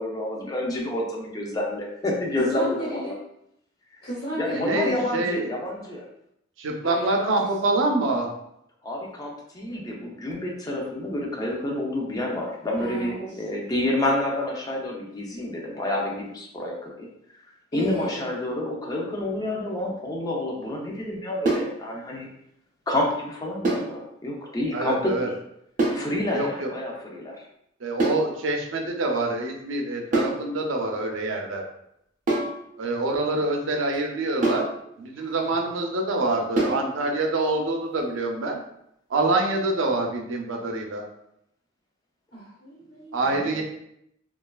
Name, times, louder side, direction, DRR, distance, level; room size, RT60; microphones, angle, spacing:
voice 1, 0.0-3.1 4.3-6.1 8.8-17.1 17.7-22.3 22.9-25.3 25.9-27.4 43.3-43.6, left 1 dB, 20° left, -1 dB, 0.5 m, -29 dB
voice 2, 2.4-3.1 4.0-5.0 6.8-7.4 12.8-13.3 17.7-18.3 35.1-35.5 42.3-43.1 43.5-43.6, right 1 dB, 50° left, -9 dB, 1.1 m, -34 dB
voice 3, 4.5-5.5 6.6-8.3 24.7-25.3 26.3-26.7 27.8-31.6 32.8-34.7 35.0-38.6 39.1-41.1 43.1-43.6, right 2 dB, 85° right, 2 dB, 0.5 m, -26 dB
repinique-head, 21.4-21.8 23.6-23.9 25.8-26.1 28.0-28.3 30.1-30.4 32.3-32.6 34.4-34.7 36.6-36.9, right 2 dB, 40° right, 0.6 m, -24 dB
3.0 x 2.3 x 2.3 m, 0.77 s
head